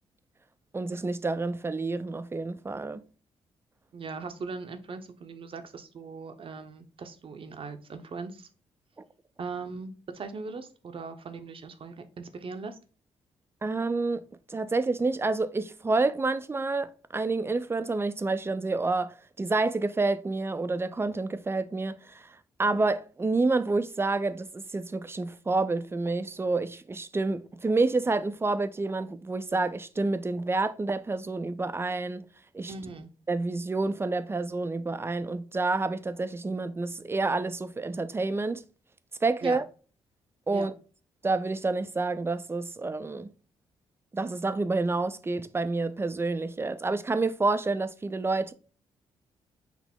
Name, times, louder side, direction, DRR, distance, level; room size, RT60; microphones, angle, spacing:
voice 1, 0.7-3.0 13.6-32.3 32.5-32.7 33.3-38.6 39.2-39.6 40.5-40.7 41.2-43.3 44.1-48.5, right 3 dB, 20° right, 0.4 m, -28 dB
voice 2, 3.9-8.5 9.4-12.8 32.7-33.1 39.4-39.6 40.5-40.7, right 4 dB, 50° right, 0.7 m, -39 dB
6.0 x 2.0 x 3.5 m
supercardioid pair, 65°, 12 cm